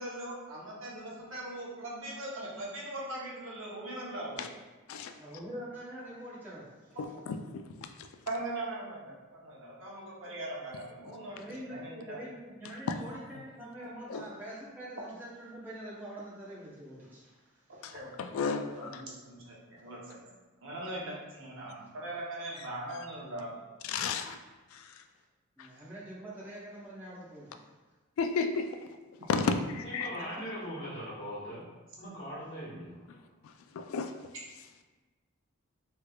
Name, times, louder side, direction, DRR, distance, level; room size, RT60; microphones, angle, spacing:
voice 1, 0.0-4.5 8.3-11.4 11.7-12.2 17.9-18.1 18.7-20.3 20.6-23.5 29.2-29.3, right 1 dB, 65° right, -5 dB, 0.8 m, -40 dB
voice 2, 5.1-7.0 11.4-18.0 25.6-27.7 30.1-30.4, right 1 dB, 10° right, -8 dB, 0.8 m, -45 dB
voice 3, 7.0-7.4 14.1-14.2 17.8-19.0 23.8-24.4 24.7-24.9 25.6-25.7 28.2-28.7 29.3-30.1 33.7-34.1, left 5 dB, 80° left, 7 dB, 0.3 m, -32 dB
voice 4, 29.8-31.7 32.0-33.3, equal, 55° left, -9 dB, 1.3 m, -41 dB
3.2 x 3.2 x 2.3 m, 1.2 s
head